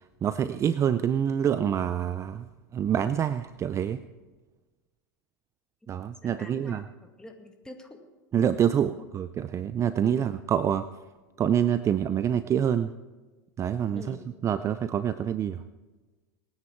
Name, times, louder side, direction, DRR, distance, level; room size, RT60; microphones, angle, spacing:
voice 1, 0.2-2.5 2.7-4.0 5.9-6.8 8.3-10.9 11.4-12.9 13.6-14.2 14.4-15.6, right 9 dB, 25° right, 13 dB, 0.5 m, -26 dB
voice 2, 6.2-8.0 8.9-9.0 10.0-10.4 14.0-14.3, left 2 dB, 5° left, 3 dB, 2.1 m, -46 dB
20.5 x 9.8 x 4.5 m, 1.2 s
hypercardioid pair, 105°, 11 cm